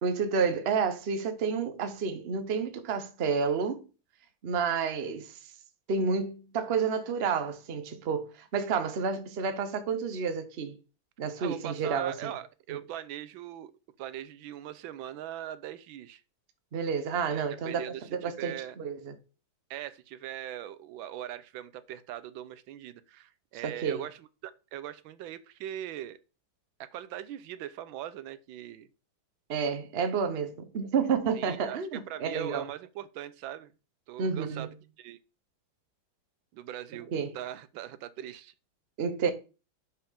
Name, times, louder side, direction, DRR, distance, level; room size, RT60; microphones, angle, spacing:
voice 1, 0.0-3.8 4.4-5.5 5.9-10.8 11.2-12.3 12.7-12.8 16.7-19.1 23.5-24.0 29.5-32.7 34.2-34.7 37.1-37.4 39.0-39.3, right 5 dB, 45° right, 0.8 m, -30 dB
voice 2, 11.4-13.7 14.0-16.2 17.3-18.8 19.7-26.2 26.8-28.9 31.3-31.8 32.1-33.7 34.1-34.7 35.0-35.2 36.5-37.1 37.3-38.5, right 12 dB, 80° right, 1.4 m, -40 dB
6.3 x 5.5 x 3.4 m
omnidirectional pair, 2.1 m